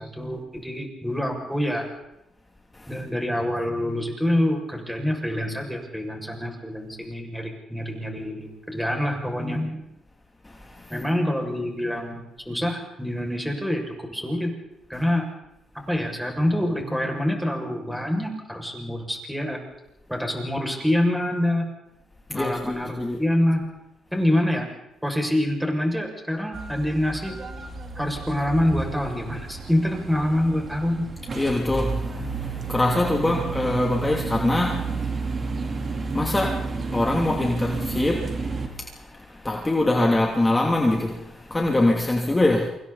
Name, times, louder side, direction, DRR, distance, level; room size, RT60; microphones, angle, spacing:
voice 1, 0.0-1.9 2.9-9.8 10.9-14.5 14.9-15.3 15.7-19.6 20.1-21.7 22.3-23.6 24.1-24.7 25.0-27.4 27.9-31.1, left 1 dB, ahead, 6.5 m, -26 dB
voice 2, 10.4-10.9 22.3-23.2 31.3-42.7, left 2 dB, 15° left, 3.0 m, -24 dB
sound 1, 26.5-38.7, right 4 dB, 40° right, 3.6 m, -31 dB
28.5 x 26.5 x 4.2 m
cardioid pair, 90°, 0 cm